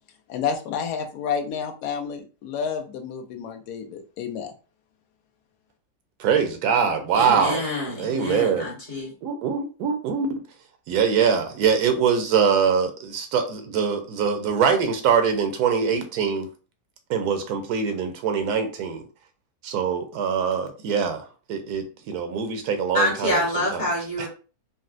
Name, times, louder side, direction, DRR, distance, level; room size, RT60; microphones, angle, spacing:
voice 1, 0.3-4.5, left 7 dB, 80° left, 1.1 m, -30 dB
voice 2, 6.2-7.6 8.0-8.7 9.2-10.3 10.9-16.5 17.1-19.0 19.6-23.8 24.2-24.3, right 6 dB, 85° right, 1.1 m, -23 dB
voice 3, 7.1-9.1 22.9-24.3, left 1 dB, 35° left, 1.1 m, -26 dB
4.0 x 2.1 x 2.4 m
omnidirectional pair, 1.6 m